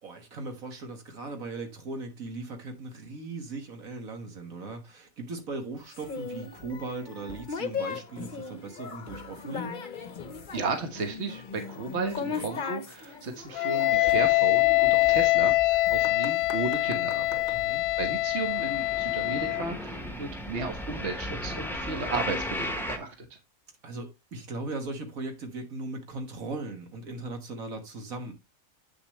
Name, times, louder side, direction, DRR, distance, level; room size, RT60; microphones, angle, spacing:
voice 1, 0.0-9.9 12.3-12.5 17.5-17.9 23.8-28.3, right 3 dB, 70° right, 1.9 m, -38 dB
sound 1, 5.9-17.6, left 5 dB, 40° left, 0.9 m, -38 dB
voice 2, 10.5-17.4 18.0-23.1, right 4 dB, 50° right, 1.6 m, -34 dB
Wind instrument woodwind instrument, 13.6-19.7, left 20 dB, 70° left, 1.0 m, -24 dB
sound 2, 14.0-16.3 16.5-23.0, left 1 dB, ahead, 0.9 m, -37 dB
8.2 x 7.0 x 3.1 m
omnidirectional pair, 1.5 m